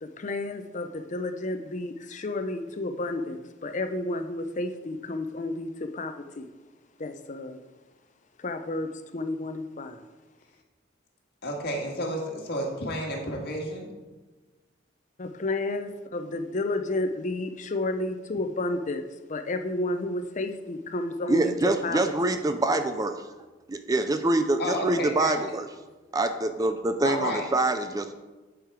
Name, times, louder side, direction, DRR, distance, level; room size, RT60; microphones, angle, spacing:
voice 1, 0.0-6.5 7.0-7.6 8.4-10.0 15.2-19.0 19.3-22.1, left 2 dB, 40° left, 8 dB, 0.6 m, -31 dB
voice 2, 11.4-13.9 24.6-25.3 27.0-27.4, equal, 60° left, 0 dB, 1.7 m, -31 dB
voice 3, 21.3-23.2 23.9-25.6 26.1-28.1, right 2 dB, 20° right, 8 dB, 0.4 m, -25 dB
10.0 x 4.9 x 4.7 m, 1.2 s
head